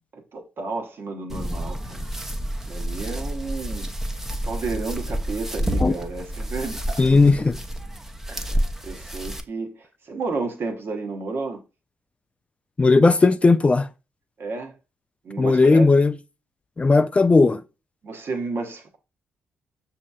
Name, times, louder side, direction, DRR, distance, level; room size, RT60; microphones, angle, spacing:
voice 1, 0.1-2.1 2.7-3.9 4.4-7.1 8.3-11.6 14.4-14.7 15.2-15.9 18.0-19.0, right 3 dB, 55° right, 0.9 m, -32 dB
sound 1, 1.3-9.4, equal, 5° right, 0.7 m, -29 dB
voice 2, 7.0-7.6 12.8-13.9 15.4-16.1 16.8-17.6, left 3 dB, 25° left, 0.3 m, -16 dB
6.1 x 2.8 x 2.3 m
hypercardioid pair, 50°, 5 cm